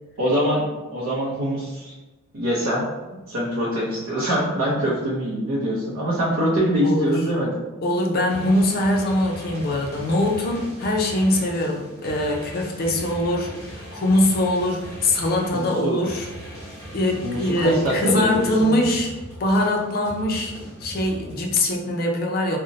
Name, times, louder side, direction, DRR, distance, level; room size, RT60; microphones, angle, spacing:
voice 1, 0.2-0.6 0.9-1.9 2.3-2.8 3.3-7.5 15.5-16.0 17.2-18.7, equal, 75° right, -7 dB, 0.6 m, -24 dB
voice 2, 6.8-7.2 7.8-16.3 16.9-19.1 19.4-20.5 20.8-22.6, left 1 dB, 45° left, 1 dB, 0.5 m, -22 dB
sound 1, 8.3-21.4, right 1 dB, 15° left, 1.0 m, -39 dB
2.6 x 2.1 x 3.8 m, 1.1 s
head